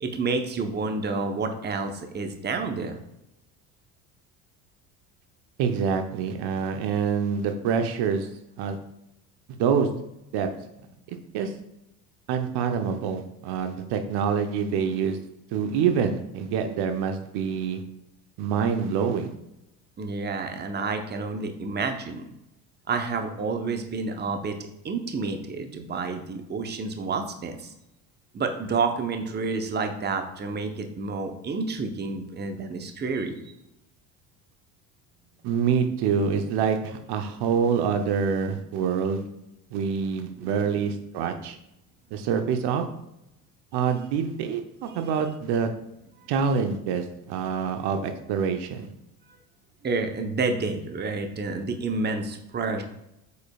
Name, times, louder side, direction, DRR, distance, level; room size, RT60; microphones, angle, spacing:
voice 1, 0.0-3.0 20.0-22.2 22.9-24.6 24.8-27.7 28.3-33.5 40.4-40.5 49.8-52.8, right 4 dB, 20° right, 5 dB, 0.9 m, -29 dB
voice 2, 5.6-8.3 8.6-8.8 9.6-9.9 10.3-10.5 11.1-11.5 12.3-15.2 15.5-17.8 18.4-19.3 35.4-39.2 39.7-41.6 42.1-42.9 43.7-45.7 46.3-48.9, right 6 dB, 55° right, 6 dB, 0.9 m, -26 dB
8.1 x 5.3 x 2.3 m, 0.86 s
hypercardioid pair, 80°, 46 cm